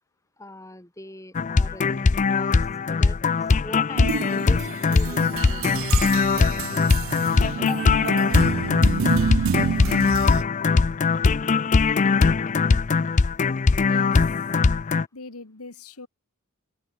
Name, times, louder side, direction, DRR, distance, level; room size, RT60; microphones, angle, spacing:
voice 1, 0.4-2.6 2.9-5.6 7.6-7.9, left 1 dB, 15° left, 6.8 m, -41 dB
sound 1, 1.3-15.0, left 4 dB, 35° left, 0.4 m, -21 dB
sound 2, 4.0-10.4, right 6 dB, 60° right, 0.5 m, -28 dB
voice 2, 13.8-14.5 15.1-16.1, left 3 dB, 90° left, 1.7 m, -40 dB
open air
head